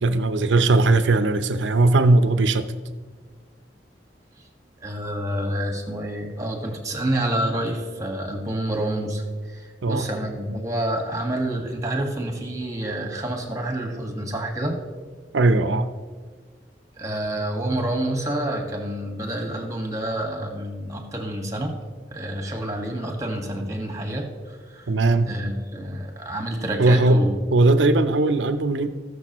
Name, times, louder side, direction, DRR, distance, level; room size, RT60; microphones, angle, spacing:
voice 1, 0.0-2.7 9.8-10.1 15.3-15.9 24.9-25.3 26.8-27.3 27.5-28.9, right 2 dB, 85° right, 10 dB, 0.7 m, -19 dB
voice 2, 4.8-14.8 17.0-21.7 22.1-24.9 25.3-27.5, right 1 dB, 20° right, 2 dB, 1.7 m, -28 dB
20.0 x 6.8 x 3.0 m, 1.5 s
head